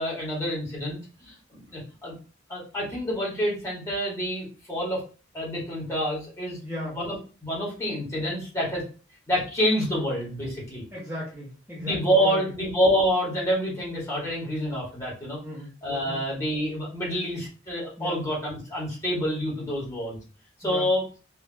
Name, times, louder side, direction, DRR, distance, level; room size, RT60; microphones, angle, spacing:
voice 1, 0.0-2.1 2.5-5.0 5.3-6.6 6.9-7.1 7.4-8.8 9.3-10.8 11.8-15.4 15.8-20.2 20.6-21.0, equal, 15° left, -5 dB, 2.1 m, -27 dB
voice 2, 6.6-7.0 10.9-12.5 15.4-15.7 16.1-16.2 18.0-18.2 20.6-20.9, equal, 10° right, -8 dB, 1.3 m, -36 dB
5.5 x 2.9 x 2.9 m, 0.37 s
head